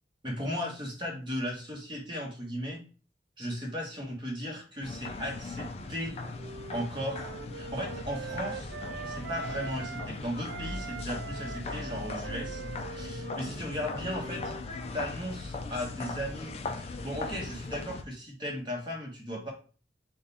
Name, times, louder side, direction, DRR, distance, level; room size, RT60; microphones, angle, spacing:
voice 1, 0.2-2.8 3.4-6.1 6.7-8.7 9.0-12.6 12.9-14.5 14.9-19.5, equal, 25° right, -1 dB, 1.1 m, -36 dB
sound 1, 4.8-18.0, left 3 dB, 35° left, 0.3 m, -39 dB
Wind instrument woodwind instrument, 5.8-10.2 10.5-15.0, right 5 dB, 70° right, 0.3 m, -43 dB
3.6 x 2.2 x 4.0 m, 0.37 s
head